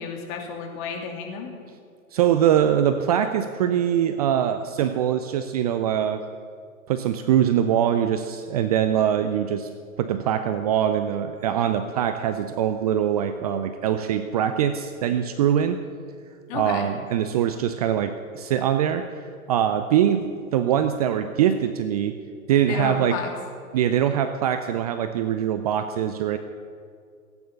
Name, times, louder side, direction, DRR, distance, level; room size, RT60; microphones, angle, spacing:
voice 1, 0.0-1.5 16.5-16.9 22.7-23.3, left 6 dB, 35° left, 2 dB, 2.7 m, -31 dB
voice 2, 2.1-6.2 6.9-9.7 10.0-15.8 16.5-22.1 22.5-23.2 23.7-26.4, right 9 dB, 30° right, 9 dB, 0.5 m, -23 dB
16.5 x 9.5 x 7.0 m, 2.2 s
figure-of-eight pair, 120°, 42 cm